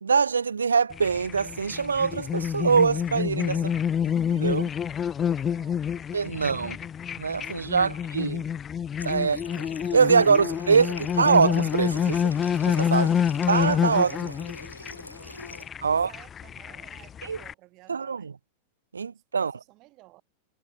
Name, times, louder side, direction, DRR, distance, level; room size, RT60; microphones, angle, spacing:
voice 1, 0.0-3.6 4.3-4.7 6.1-6.8 7.2-8.4 9.0-9.4 9.9-12.4 12.6-13.1 13.5-14.3 15.8-16.1 17.3-17.4 17.9-18.3 18.9-19.5, right 5 dB, 75° right, 0.4 m, -23 dB
sound 1, 0.9-17.5, left 8 dB, 25° left, 0.6 m, -28 dB
voice 2, 3.5-6.9 7.5-8.1 9.1-9.4 10.0-11.2 12.9-13.2 15.3-18.3 19.1-20.2, right 20 dB, 40° right, 4.5 m, -55 dB
Water tap faucet, 9.0-15.7, left 1 dB, 85° left, 1.2 m, -44 dB
figure-of-eight pair, 90°, 0 cm